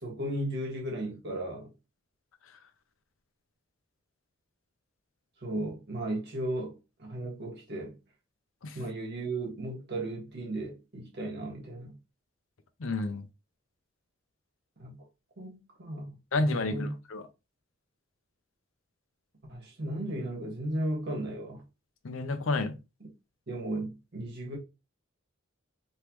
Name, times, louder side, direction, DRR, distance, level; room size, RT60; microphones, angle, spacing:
voice 1, 0.0-1.7 5.4-6.7 7.0-7.9 8.7-11.9 14.8-15.0 15.4-16.1 16.4-16.9 19.5-21.6 23.5-24.6, right 1 dB, 55° right, 1.6 m, -35 dB
voice 2, 12.8-13.2 16.3-17.3 22.0-22.7, left 2 dB, 75° left, 0.6 m, -30 dB
3.4 x 3.1 x 3.0 m
head